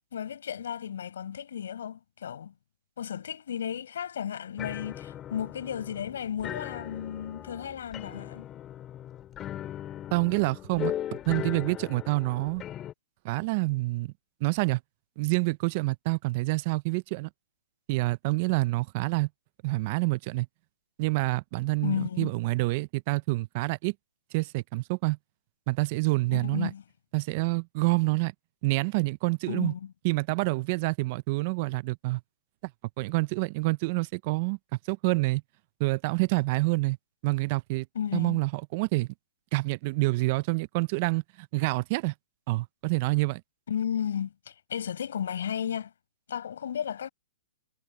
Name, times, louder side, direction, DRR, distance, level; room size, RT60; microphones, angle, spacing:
voice 1, 0.1-2.5 3.0-8.5 21.8-22.3 26.3-26.8 29.5-29.9 37.9-38.4 43.7-45.9 46.3-47.1, left 8 dB, 70° left, 5.9 m, -34 dB
sound 1, 4.6-12.9, left 11 dB, 20° left, 2.5 m, -38 dB
voice 2, 10.1-12.6 13.2-14.1 14.4-14.8 15.2-17.3 17.9-19.3 19.6-20.5 21.0-23.9 24.3-25.2 25.7-26.7 27.1-28.3 28.6-29.7 30.0-32.2 33.0-34.6 34.9-35.4 35.8-37.0 37.2-37.9 38.1-39.1 39.5-42.1 42.5-43.4, right 23 dB, 35° right, 0.4 m, -27 dB
hypercardioid pair, 160°, 0 cm